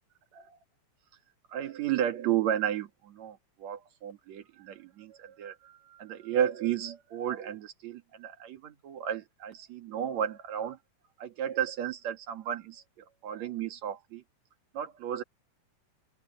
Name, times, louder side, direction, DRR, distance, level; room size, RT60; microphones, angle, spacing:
voice 1, 1.5-10.8 11.2-14.2 14.7-15.2, right 10 dB, 70° right, 2.9 m, -33 dB
open air
omnidirectional pair, 3.4 m